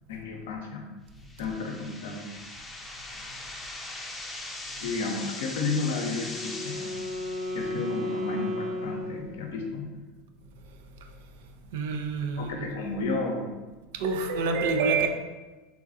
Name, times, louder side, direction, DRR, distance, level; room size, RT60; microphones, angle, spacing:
voice 1, 0.1-0.9 1.4-2.3 4.8-6.9 7.5-9.9 12.4-13.5, left 3 dB, 85° left, 1 dB, 0.6 m, -32 dB
sound 1, 1.2-8.2, left 2 dB, 15° left, 0.6 m, -41 dB
Wind instrument woodwind instrument, 5.9-9.8, left 2 dB, 40° right, 0.8 m, -34 dB
voice 2, 11.7-12.6 13.9-15.1, right 4 dB, 80° right, 6 dB, 0.3 m, -27 dB
3.5 x 2.3 x 2.6 m, 1.2 s
hypercardioid pair, 100°, 0 cm